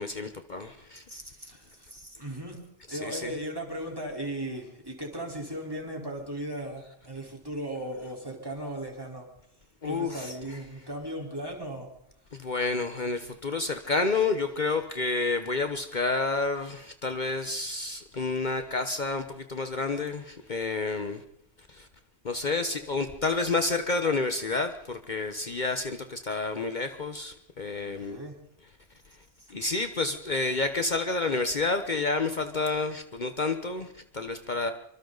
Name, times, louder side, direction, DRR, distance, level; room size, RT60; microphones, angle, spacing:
voice 1, 0.0-1.0 2.9-3.3 9.8-10.6 12.3-21.2 21.7-21.9 22.2-28.2 29.5-34.7, left 3 dB, 50° left, 8 dB, 1.2 m, -29 dB
voice 2, 1.1-2.6 2.9-9.3 9.8-11.9 27.8-28.3 29.4-29.5, right 1 dB, 20° right, 0 dB, 4.2 m, -37 dB
26.5 x 25.0 x 4.0 m, 0.72 s
omnidirectional pair, 1.1 m